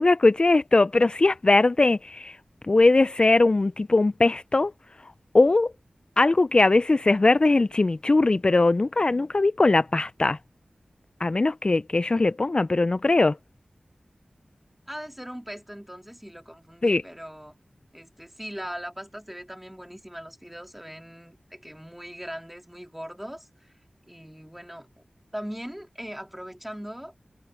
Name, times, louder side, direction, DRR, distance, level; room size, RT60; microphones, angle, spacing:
voice 1, 0.0-2.4 2.6-4.7 5.0-5.7 6.2-10.4 11.2-13.4 16.8-17.0, left 2 dB, 40° left, 0.3 m, -20 dB
voice 2, 14.9-17.5 17.9-23.7 24.1-24.9 25.3-27.1, equal, 5° right, 2.7 m, -40 dB
wide cardioid pair, 65°, 2 cm